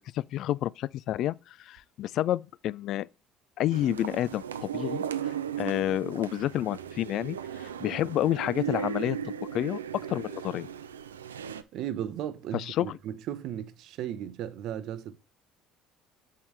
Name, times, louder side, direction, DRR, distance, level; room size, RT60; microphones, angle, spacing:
voice 1, 0.1-3.1 3.6-9.2 9.5-9.8 10.1-10.7 12.5-13.0, left 13 dB, 55° left, 0.3 m, -30 dB
sound 1, 3.7-11.6, right 8 dB, 85° right, 0.4 m, -36 dB
voice 2, 11.7-15.2, right 10 dB, 60° right, 0.8 m, -35 dB
7.8 x 5.7 x 3.3 m
figure-of-eight pair, 60°, 0 cm